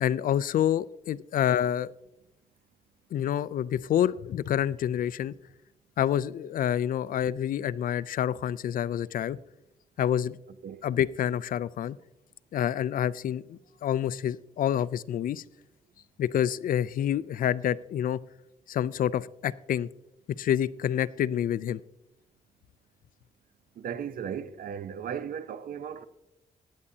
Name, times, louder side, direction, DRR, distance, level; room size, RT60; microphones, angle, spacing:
voice 1, 0.0-1.9 3.1-5.3 6.0-9.4 10.0-10.4 10.8-12.0 12.5-15.4 16.2-18.2 18.7-19.9 20.4-21.8, left 10 dB, 75° left, 0.4 m, -27 dB
voice 2, 23.8-26.0, right 8 dB, 80° right, 0.7 m, -36 dB
16.0 x 9.7 x 2.8 m
cardioid pair, 95°, 15 cm